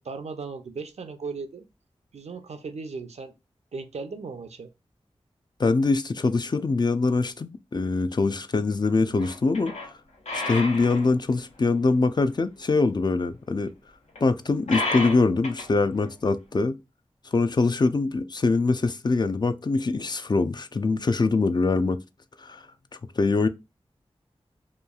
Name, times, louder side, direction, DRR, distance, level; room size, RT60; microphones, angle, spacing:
voice 1, 0.0-1.6 2.1-3.3 3.7-4.7, right 4 dB, 75° right, 0.5 m, -37 dB
voice 2, 5.6-9.7 10.3-13.7 14.2-16.7 17.3-22.0 22.4-22.6 23.2-23.5, left 3 dB, 40° left, 0.3 m, -23 dB
sound 1, 9.2-9.9 10.3-11.1 11.9-12.0 14.1-14.2 14.7-15.7 16.0-16.1, left 2 dB, 85° left, 0.7 m, -31 dB
3.0 x 2.3 x 2.3 m
cardioid pair, 45°, 11 cm